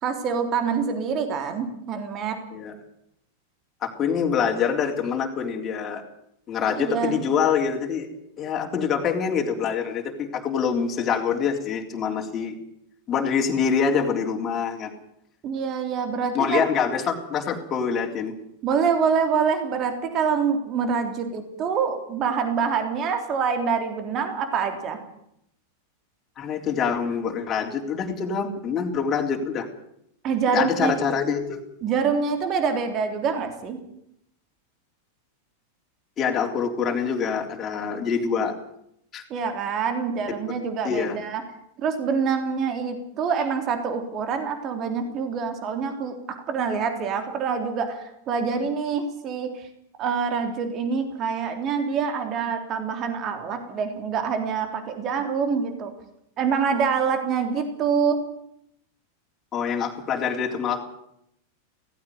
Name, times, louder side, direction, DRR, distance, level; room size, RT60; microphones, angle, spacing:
voice 1, 0.0-2.4 6.8-7.2 15.4-16.6 18.6-25.0 30.2-31.0 31.8-33.8 39.3-41.4 41.8-49.7 50.0-55.9 56.4-58.1, right 6 dB, 35° right, 6 dB, 3.6 m, -26 dB
voice 2, 3.8-6.0 6.5-8.1 8.4-12.5 13.1-14.9 16.3-18.3 26.4-29.7 30.5-31.6 36.2-38.5 39.1-39.2 40.8-41.2 59.5-60.8, left 6 dB, 25° left, 1 dB, 3.7 m, -25 dB
17.5 x 15.5 x 9.5 m, 0.75 s
figure-of-eight pair, 90°, 0 cm